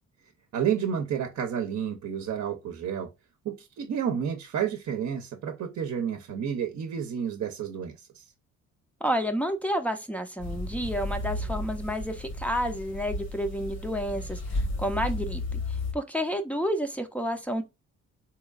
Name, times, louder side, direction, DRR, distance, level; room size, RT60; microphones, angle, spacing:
voice 1, 0.5-3.1 3.4-8.2, right 8 dB, 60° right, 0.7 m, -30 dB
voice 2, 9.0-14.4 14.8-15.4 15.9-17.6, equal, 5° left, 0.5 m, -30 dB
sound 1, 10.4-15.9, left 2 dB, 60° left, 1.3 m, -33 dB
3.8 x 2.9 x 2.4 m
cardioid pair, 90°, 30 cm